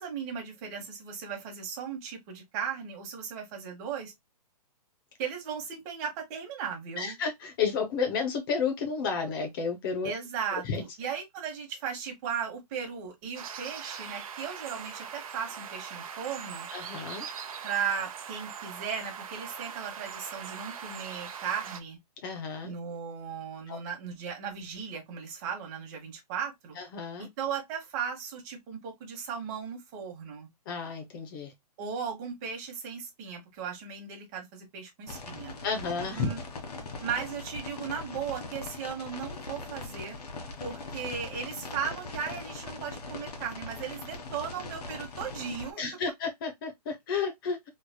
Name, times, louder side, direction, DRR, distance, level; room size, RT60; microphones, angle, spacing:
voice 1, 0.0-4.1 5.2-7.2 10.0-16.7 17.6-22.0 22.6-26.8 27.2-30.5 31.8-35.5 36.1-36.4 37.0-40.2 40.6-45.8, right 7 dB, 30° right, 1.2 m, -36 dB
voice 2, 7.0-10.1 10.6-10.8 16.7-17.2 22.2-22.7 23.7-23.8 26.8-27.3 30.7-31.5 35.6-36.3 45.8-47.7, left 5 dB, 30° left, 0.7 m, -31 dB
sound 1, 13.4-21.8, right 7 dB, 60° right, 0.7 m, -41 dB
sound 2, 35.1-45.7, left 3 dB, 70° left, 1.3 m, -41 dB
3.2 x 2.9 x 2.2 m
hypercardioid pair, 155°, 21 cm